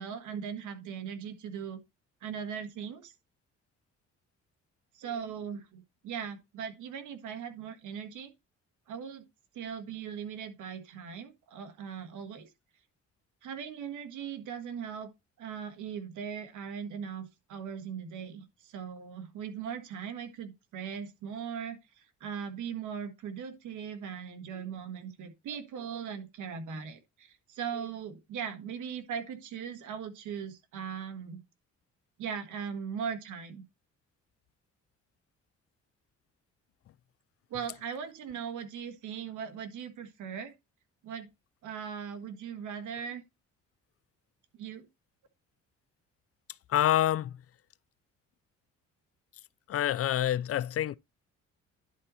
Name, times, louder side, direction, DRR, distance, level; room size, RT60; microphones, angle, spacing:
voice 1, 0.0-1.8 2.2-3.1 4.9-8.3 8.9-9.3 9.5-12.5 13.4-15.1 15.4-31.4 32.2-33.6 37.5-40.5 41.0-41.3 41.6-43.2 44.6-44.9, right 7 dB, 80° right, 1.6 m, -39 dB
voice 2, 46.7-47.3 49.7-50.9, left 12 dB, 50° left, 0.4 m, -27 dB
11.0 x 4.0 x 4.2 m
cardioid pair, 90°, 30 cm